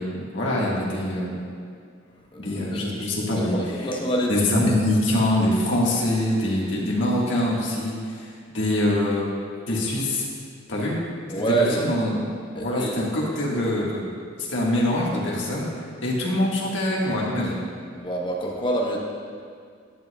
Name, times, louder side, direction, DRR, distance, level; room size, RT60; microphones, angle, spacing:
voice 1, 0.0-1.4 2.4-3.9 4.3-9.3 9.7-10.2 10.7-11.0 11.5-12.2 12.6-14.1 14.4-15.7 16.0-17.6, left 1 dB, 75° left, -4 dB, 1.6 m, -24 dB
voice 2, 2.3-2.9 3.4-4.4 11.3-11.8 12.5-13.0 17.9-19.0, right 1 dB, 25° left, -2 dB, 1.0 m, -26 dB
10.5 x 8.0 x 2.3 m, 2.2 s
head